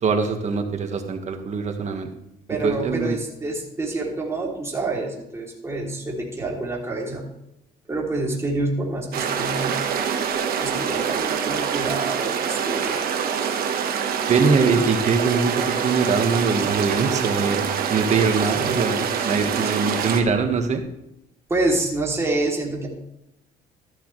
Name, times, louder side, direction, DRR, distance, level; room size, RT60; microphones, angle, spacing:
voice 1, 0.0-2.1 2.6-3.2 14.3-20.8, right 5 dB, 45° right, 5 dB, 1.7 m, -22 dB
voice 2, 2.5-7.2 7.9-9.8 10.6-13.5 18.6-19.7 21.5-22.9, right 2 dB, 15° right, -3 dB, 3.2 m, -27 dB
sound 1, 9.1-20.2, right 7 dB, 60° right, 1.4 m, -25 dB
13.5 x 11.5 x 3.3 m, 0.82 s
cardioid pair, 110°, 17 cm